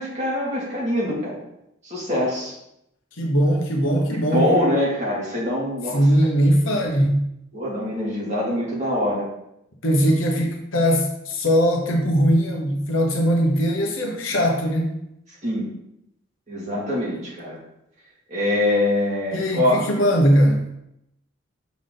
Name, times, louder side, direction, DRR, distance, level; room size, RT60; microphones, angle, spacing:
voice 1, 0.0-1.4 1.8-2.5 4.1-6.0 7.5-9.3 15.4-15.7 16.5-17.6 18.3-19.8, left 1 dB, 35° right, -6 dB, 2.5 m, -24 dB
voice 2, 3.2-4.5 5.9-7.2 9.8-14.9 19.3-20.6, equal, 75° left, 1 dB, 1.1 m, -20 dB
7.1 x 5.2 x 3.9 m, 0.81 s
head